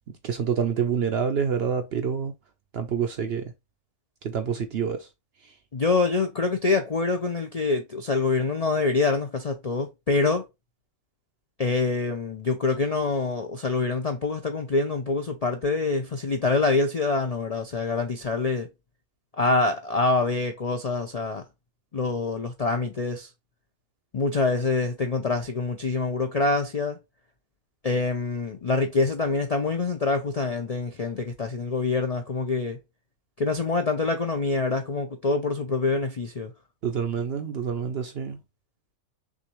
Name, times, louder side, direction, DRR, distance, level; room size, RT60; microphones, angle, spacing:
voice 1, 0.2-2.3 2.7-3.4 4.2-5.1 36.8-38.4, right 7 dB, 60° right, 0.7 m, -27 dB
voice 2, 5.7-10.5 11.6-18.7 19.4-21.4 21.9-23.3 24.1-27.0 27.8-32.8 33.4-36.5, left 3 dB, 50° left, 0.4 m, -25 dB
6.1 x 2.6 x 3.0 m
omnidirectional pair, 1.5 m